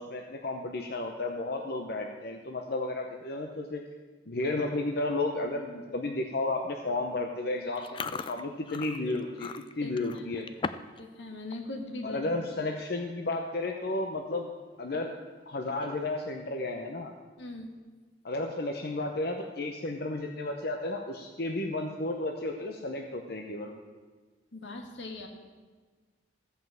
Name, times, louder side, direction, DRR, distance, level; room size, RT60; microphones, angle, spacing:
voice 1, 0.0-3.8 4.3-9.5 9.8-10.4 12.0-14.5 14.8-15.1 15.5-17.1 18.2-23.7, left 2 dB, 55° left, 2 dB, 0.8 m, -33 dB
Chewing mastication, 7.7-11.0 11.3-11.6 12.1-12.3 13.0-13.1 13.3-13.7 14.1-14.2 15.7-16.2, left 5 dB, 25° left, 0.3 m, -39 dB
voice 2, 9.8-10.3 11.0-12.5 17.4-17.7 24.5-25.3, left 2 dB, 80° left, 3 dB, 1.7 m, -41 dB
14.5 x 5.6 x 7.6 m, 1.4 s
head